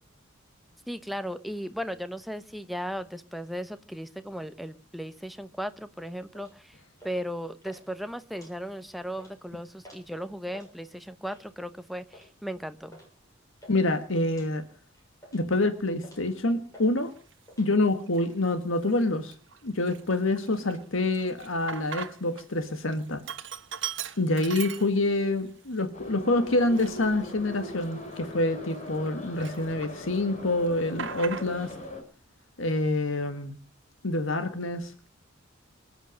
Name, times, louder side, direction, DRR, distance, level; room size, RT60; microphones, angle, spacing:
voice 1, 0.9-6.8 7.0-13.0, equal, ahead, 10 dB, 0.9 m, -36 dB
sound 1, 6.3-6.6 7.0-7.3 7.6-7.8 8.2-8.8 9.1-9.3 9.8-10.1 10.4-10.7 11.3-11.5 12.1-12.3 12.9-13.1 13.4-13.8 14.3-14.5 14.9-15.5 16.0-16.3 16.7-16.9 17.2-17.7, equal, 15° left, 7.1 m, -51 dB
voice 2, 13.7-14.6 15.3-17.1 17.6-19.3 19.6-23.2 24.2-31.7 32.6-33.5 34.0-34.9, left 2 dB, 75° left, 8 dB, 1.6 m, -27 dB
Sink (filling or washing), 17.2-17.3 18.0-18.5 18.9-19.0 19.3-22.4 22.7-25.3 25.7-25.8 26.5-29.1 29.4-30.2 30.4-31.8, right 7 dB, 65° right, 1.3 m, -39 dB
Subway metro underground, 25.9-32.0, left 1 dB, 40° left, 4.0 m, -41 dB
25.0 x 9.0 x 6.4 m, 0.42 s
head